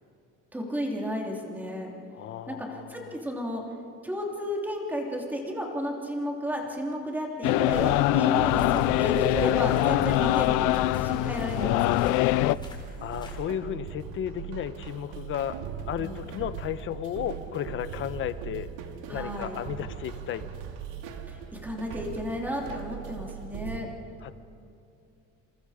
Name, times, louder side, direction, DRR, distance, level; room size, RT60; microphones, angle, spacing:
voice 1, 0.5-1.9 2.5-3.6 4.0-12.3 16.0-16.2 19.1-19.6 21.3-23.9, equal, 5° right, 0 dB, 3.1 m, -33 dB
voice 2, 2.1-3.1 13.0-15.6 15.9-18.7 19.1-20.5 22.6-22.7 24.2-24.4, left 10 dB, 40° left, 12 dB, 1.0 m, -34 dB
sound 1, 7.4-12.6, left 19 dB, 80° left, 0.5 m, -23 dB
sound 2, 7.7-23.8, right 8 dB, 90° right, 2.3 m, -40 dB
sound 3, 8.5-13.4, left 3 dB, 15° left, 3.2 m, -41 dB
28.0 x 27.5 x 5.1 m, 2.6 s
cardioid pair, 170°, 30 cm